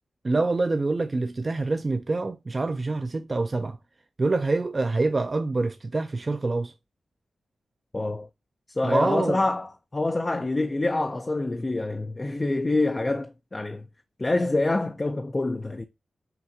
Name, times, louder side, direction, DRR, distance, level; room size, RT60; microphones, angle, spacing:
voice 1, 0.2-3.8 4.2-6.7 8.8-9.4, right 3 dB, 35° right, 0.4 m, -26 dB
voice 2, 7.9-8.3 8.7-13.9 14.2-15.8, left 2 dB, 30° left, 0.4 m, -26 dB
5.8 x 2.6 x 2.7 m
cardioid pair, 70°, 0 cm